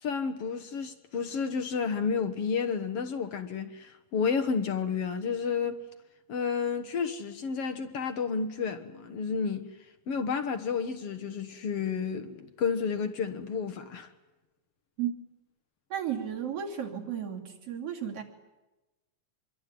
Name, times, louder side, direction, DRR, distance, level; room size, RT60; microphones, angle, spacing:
voice 1, 0.0-5.8 6.3-9.7 10.1-14.1, left 6 dB, 60° left, 2.0 m, -31 dB
voice 2, 15.9-18.2, right 9 dB, 50° right, 3.8 m, -33 dB
25.5 x 23.0 x 9.5 m
omnidirectional pair, 3.4 m